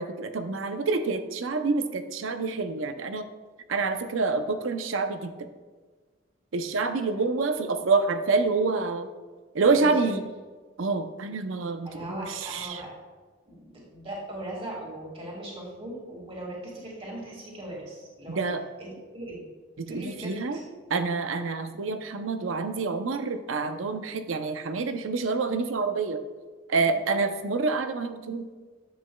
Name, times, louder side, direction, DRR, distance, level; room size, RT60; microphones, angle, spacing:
voice 1, 0.0-3.2 3.7-5.5 6.5-9.1 9.5-10.2 10.8-12.8 18.3-18.6 19.8-20.6 20.9-26.2 26.7-28.5, right 4 dB, 80° right, 8 dB, 0.6 m, -27 dB
voice 2, 9.7-10.1 11.8-12.9 13.5-18.4 18.8-19.4 19.9-20.8 26.9-27.0, right 1 dB, 30° right, -3 dB, 1.9 m, -39 dB
10.0 x 7.5 x 2.2 m, 1.4 s
head